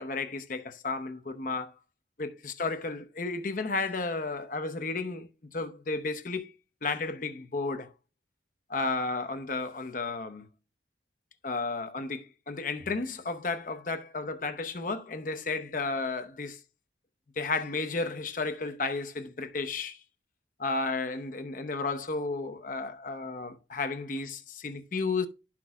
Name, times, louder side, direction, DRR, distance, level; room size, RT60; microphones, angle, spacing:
voice 1, 0.0-1.7 2.2-6.5 6.8-7.9 8.7-10.5 11.4-16.6 17.4-20.0 20.6-25.3, left 3 dB, 45° left, 0.7 m, -33 dB
10.5 x 6.0 x 2.3 m
head